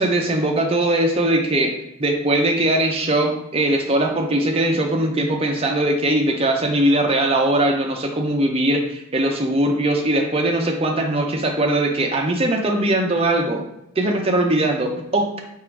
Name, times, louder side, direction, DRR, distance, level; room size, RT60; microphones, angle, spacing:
voice 1, 0.0-1.7 2.0-13.6 14.0-15.3, right 1 dB, 30° right, 2 dB, 0.5 m, -20 dB
3.6 x 2.5 x 4.4 m, 0.82 s
head